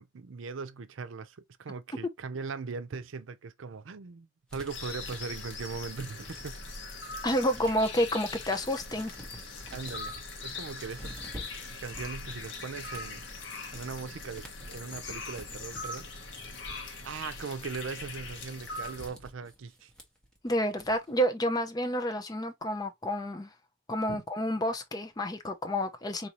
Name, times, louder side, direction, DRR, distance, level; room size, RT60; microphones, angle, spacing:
voice 1, 0.0-6.5 9.7-10.1 10.4-11.2 11.8-13.2 13.7-16.2 17.0-19.9 24.1-24.2, right 5 dB, 85° right, 0.5 m, -39 dB
sound 1, 4.5-6.9 7.3-21.2, equal, 5° left, 1.0 m, -50 dB
sound 2, 4.7-19.1, left 3 dB, 65° left, 1.0 m, -41 dB
voice 2, 7.2-9.1 20.4-23.5 23.9-26.3, equal, 20° left, 0.6 m, -29 dB
4.0 x 2.7 x 2.9 m
head